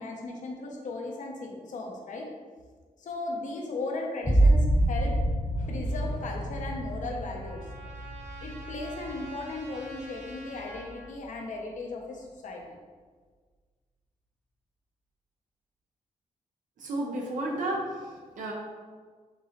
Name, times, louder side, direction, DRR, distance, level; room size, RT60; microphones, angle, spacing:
voice 1, 0.0-2.2 3.0-5.1 5.5-7.6 8.4-12.6, left 2 dB, 70° left, 0 dB, 0.8 m, -36 dB
sound 1, 4.2-9.7 10.2-10.8, right 1 dB, 10° left, 0.8 m, -27 dB
Trumpet, 6.6-11.1, right 2 dB, 60° right, 1.0 m, -47 dB
voice 2, 16.8-18.5, right 1 dB, 75° right, -1 dB, 0.6 m, -32 dB
4.6 x 3.7 x 3.0 m, 1.5 s
cardioid pair, 100°, 13 cm